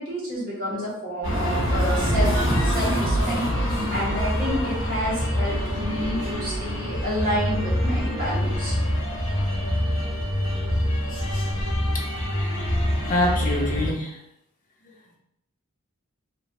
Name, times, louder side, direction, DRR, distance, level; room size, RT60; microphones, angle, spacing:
voice 1, 0.0-2.3 2.6-8.8, equal, 40° right, -6 dB, 1.1 m, -29 dB
sound 1, 1.2-13.9, equal, 55° left, 1.0 m, -25 dB
voice 2, 11.8-12.3 12.8-14.2 14.8-15.0, left 1 dB, 35° left, -1 dB, 0.6 m, -27 dB
3.0 x 2.3 x 2.8 m, 0.78 s
head